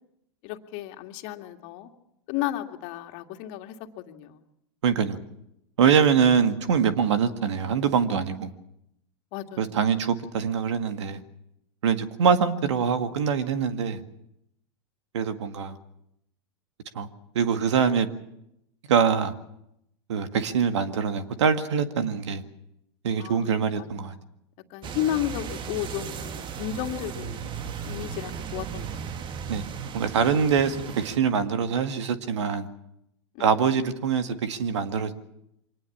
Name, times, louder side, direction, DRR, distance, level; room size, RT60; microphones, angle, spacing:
voice 1, 0.4-1.9 2.3-4.4 9.3-9.8 23.2-23.9 24.1-24.2 24.7-27.5 27.8-29.3 33.3-33.7, left 12 dB, 50° left, 2.2 m, -33 dB
voice 2, 4.8-5.2 5.8-8.5 9.6-11.2 11.8-14.0 15.1-15.8 16.9-17.1 17.4-18.1 18.9-19.3 20.1-22.4 23.0-24.2 29.5-29.6 29.9-32.7 33.4-35.1, right 6 dB, 75° right, 2.0 m, -24 dB
sound 1, 24.8-31.2, right 7 dB, 30° right, 1.3 m, -36 dB
25.0 x 19.0 x 7.3 m
hypercardioid pair, 100°, 15 cm